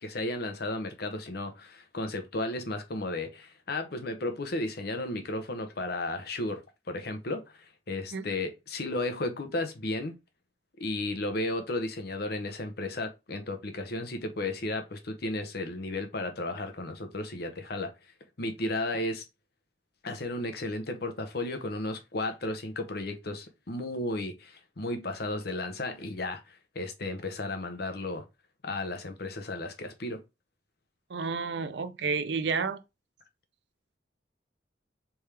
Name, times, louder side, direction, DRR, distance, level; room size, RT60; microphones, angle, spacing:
voice 1, 0.0-6.6 6.9-10.2 10.8-17.9 18.4-19.2 20.0-28.2 28.6-30.2, left 2 dB, 60° left, 0.9 m, -34 dB
voice 2, 31.1-32.8, right 5 dB, 70° right, 0.6 m, -30 dB
4.4 x 3.5 x 3.3 m
head